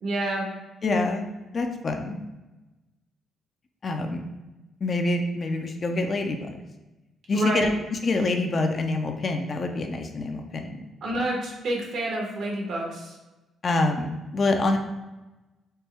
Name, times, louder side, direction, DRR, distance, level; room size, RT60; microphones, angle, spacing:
voice 1, 0.0-0.5 7.3-7.7 11.0-13.2, right 1 dB, 70° right, -1 dB, 1.1 m, -28 dB
voice 2, 0.8-1.3 1.5-2.2 3.8-4.2 4.8-6.6 7.3-7.7 8.0-10.8 13.6-14.8, left 2 dB, 40° left, 4 dB, 0.5 m, -26 dB
4.4 x 2.2 x 3.3 m, 1.1 s
cardioid pair, 90°, 0 cm